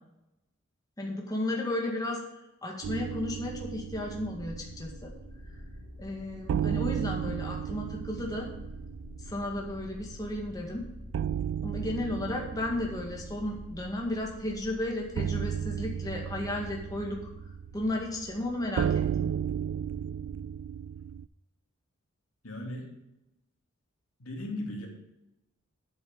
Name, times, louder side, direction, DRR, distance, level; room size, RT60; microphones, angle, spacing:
voice 1, 1.0-2.2 2.6-5.1 6.0-8.5 9.3-10.8 11.6-17.2 17.7-19.3, left 1 dB, 15° left, -1 dB, 1.8 m, -34 dB
sound 1, 2.8-5.7 5.9-6.0 6.5-21.3, right 8 dB, 75° right, 0.3 m, -35 dB
sound 2, 3.4-20.4, equal, 65° left, 2.3 m, -49 dB
voice 2, 22.4-22.9 24.2-24.9, left 1 dB, 90° left, 1 dB, 2.6 m, -37 dB
8.8 x 8.2 x 5.2 m, 0.92 s
head